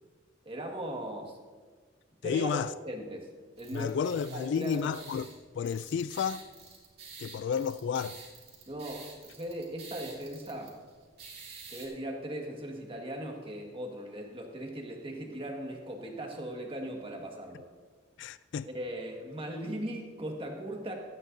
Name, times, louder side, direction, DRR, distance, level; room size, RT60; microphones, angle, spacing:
voice 1, 0.4-1.4 2.2-2.6 2.8-3.3 3.6-4.9 8.7-10.7 11.7-17.7 18.7-21.0, right 1 dB, 30° right, 1.7 m, -38 dB
voice 2, 2.2-2.7 3.7-5.3 5.5-6.4 7.2-8.2 18.2-18.7, left 7 dB, 65° left, 0.3 m, -31 dB
sound 1, 3.6-11.9, right 5 dB, 55° right, 2.8 m, -50 dB
16.5 x 13.5 x 2.7 m
head